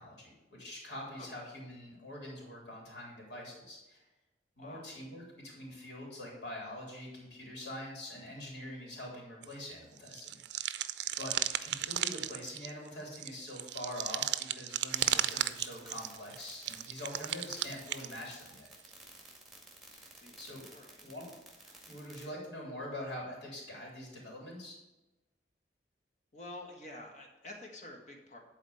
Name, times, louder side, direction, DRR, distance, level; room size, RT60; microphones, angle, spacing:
voice 1, 0.0-4.0 4.6-10.8 11.2-11.3 11.6-18.7 19.9-20.6 21.0-21.3 21.6-24.7, left 1 dB, 70° left, -2 dB, 3.4 m, -44 dB
sound 1, 9.4-9.7 10.0-18.2 18.9-19.0, right 12 dB, 70° right, 0.5 m, -35 dB
sound 2, 14.9-22.3, right 2 dB, ahead, 2.0 m, -53 dB
voice 2, 20.7-21.0 26.3-28.4, left 1 dB, 40° left, 1 dB, 1.7 m, -48 dB
11.0 x 4.3 x 7.1 m, 1.1 s
head